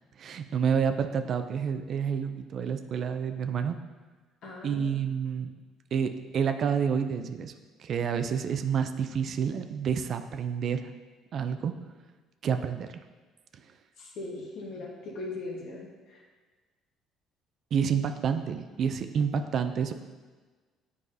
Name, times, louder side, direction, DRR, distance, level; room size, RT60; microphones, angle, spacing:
voice 1, 0.2-3.8 4.6-5.5 5.9-7.5 7.8-10.9 11.3-11.7 12.4-12.9 17.7-19.9, right 7 dB, 55° right, 8 dB, 0.4 m, -29 dB
voice 2, 4.4-4.9 14.0-16.2, left 2 dB, 65° left, -2 dB, 1.3 m, -39 dB
7.7 x 4.7 x 2.7 m, 1.4 s
supercardioid pair, 70°, 0 cm